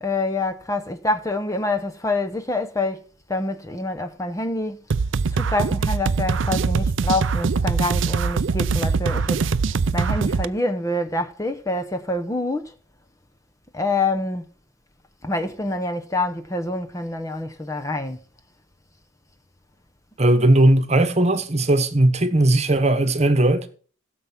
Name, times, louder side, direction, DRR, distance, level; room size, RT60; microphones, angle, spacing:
voice 1, 0.0-3.0 3.3-4.8 5.3-9.4 9.9-12.7 13.7-14.4 15.2-18.2, left 2 dB, 15° left, 0.8 m, -26 dB
sound 1, 4.9-10.5, right 4 dB, 60° right, 0.5 m, -22 dB
voice 2, 20.2-23.7, right 1 dB, 30° right, 1.3 m, -18 dB
16.0 x 7.0 x 5.9 m
head